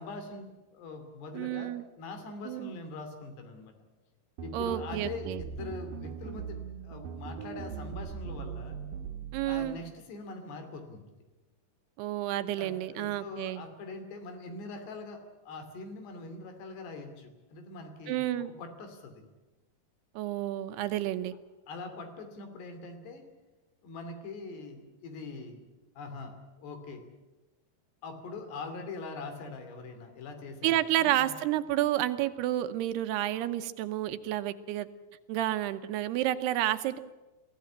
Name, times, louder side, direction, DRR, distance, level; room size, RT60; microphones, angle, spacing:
voice 1, 0.0-3.7 4.4-8.8 9.5-11.0 12.6-19.2 21.7-23.2 23.8-25.7 26.0-27.0 28.0-31.4, left 3 dB, 85° left, 7 dB, 4.9 m, -43 dB
voice 2, 1.3-1.8 2.5-2.7 4.5-5.4 9.3-9.8 12.0-13.6 18.1-18.5 20.2-21.3 30.6-34.9 35.3-37.0, right 13 dB, 80° right, 11 dB, 2.9 m, -30 dB
sound 1, 4.4-9.7, right 6 dB, 65° right, 2.6 m, -40 dB
23.5 x 15.5 x 10.0 m, 1.1 s
omnidirectional pair, 4.7 m